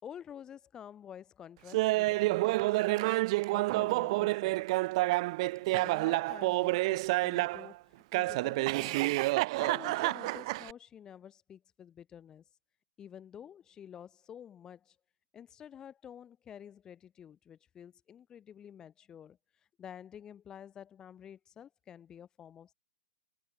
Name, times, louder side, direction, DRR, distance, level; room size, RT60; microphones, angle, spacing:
voice 1, 0.0-3.1 3.5-4.6 5.6-7.8 8.1-9.2 9.6-12.4 13.0-15.0 15.3-19.4 19.8-22.7, left 9 dB, 10° left, 7.2 m, -50 dB
Laughter, 1.7-7.7 8.1-10.7, right 21 dB, 30° right, 1.5 m, -29 dB
hypercardioid pair, 170°, 6 cm